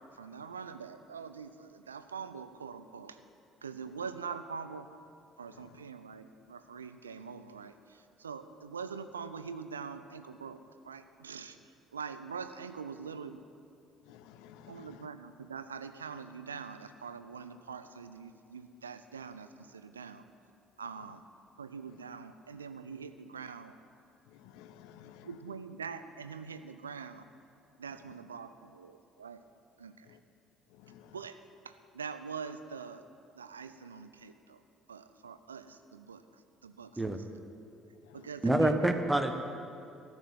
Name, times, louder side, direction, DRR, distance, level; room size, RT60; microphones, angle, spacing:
voice 1, 0.2-3.2 3.6-4.9 5.4-10.6 10.8-11.6 11.9-13.4 14.7-20.2 20.8-21.2 21.6-23.8 25.2-27.2 27.8-29.4 29.8-30.1 31.1-31.4 31.6-33.0 33.4-34.6 34.9-36.2 36.6-37.2 38.1-38.9, right 6 dB, 80° right, 11 dB, 0.5 m, -44 dB
voice 2, 14.1-15.1 24.5-25.3 30.9-31.1 38.2-38.3, left 10 dB, 60° left, 12 dB, 0.6 m, -53 dB
voice 3, 38.4-39.3, right 1 dB, 10° right, 7 dB, 1.2 m, -26 dB
14.0 x 8.1 x 8.9 m, 2.5 s
figure-of-eight pair, 55°, 0 cm